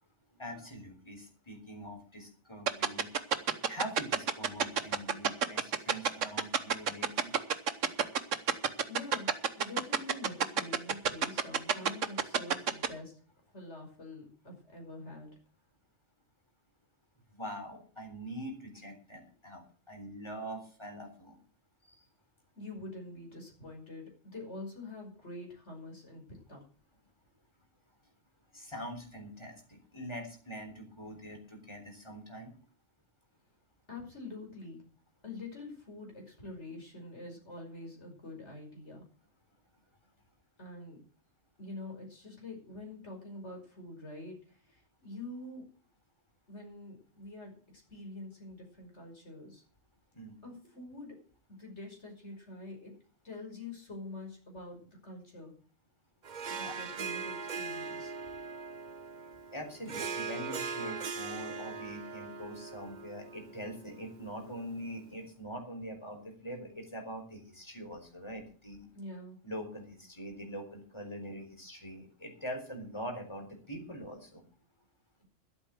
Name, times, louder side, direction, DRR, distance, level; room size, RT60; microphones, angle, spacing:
voice 1, 0.3-3.1 3.7-7.3 17.3-21.4 21.9-22.0 28.5-32.5 50.1-50.3 56.6-56.7 59.5-68.9 69.4-74.4, equal, 20° left, 4 dB, 3.9 m, -43 dB
sound 1, 2.7-12.9, right 7 dB, 75° right, 1.5 m, -27 dB
voice 2, 8.9-9.3 9.5-13.1 13.5-15.3 22.6-26.2 26.5-26.6 33.9-34.8 35.2-39.0 40.6-41.0 41.6-45.6 46.5-47.5 47.9-49.6 50.4-51.2 51.6-52.9 53.2-55.5 56.6-58.1 68.9-69.4, left 2 dB, 60° left, 1 dB, 6.0 m, -46 dB
Harp, 56.2-64.9, right 5 dB, 45° right, 0.8 m, -40 dB
12.5 x 8.7 x 7.6 m, 0.40 s
omnidirectional pair, 1.3 m